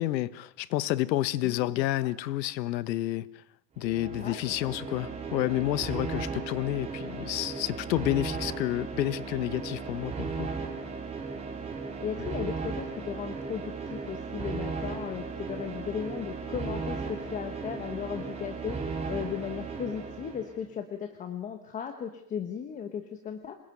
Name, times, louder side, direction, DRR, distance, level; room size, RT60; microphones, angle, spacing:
voice 1, 0.0-3.2 3.8-10.5, left 15 dB, 85° left, 1.4 m, -30 dB
voice 2, 1.4-2.1 4.2-5.0 12.0-23.6, left 8 dB, 15° left, 1.3 m, -36 dB
sound 1, 3.8-20.6, right 4 dB, 10° right, 3.6 m, -36 dB
26.5 x 21.5 x 9.2 m
supercardioid pair, 180°, 50 cm